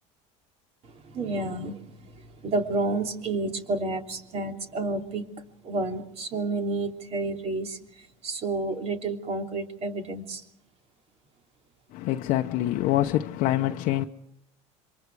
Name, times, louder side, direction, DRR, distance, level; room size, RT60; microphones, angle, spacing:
voice 1, 1.1-1.8 2.4-5.2 5.6-7.8 8.2-10.4, right 3 dB, 40° right, 3.2 m, -30 dB
voice 2, 11.9-14.0, left 14 dB, 60° left, 0.9 m, -25 dB
27.5 x 24.0 x 4.8 m
supercardioid pair, 115°, 15 cm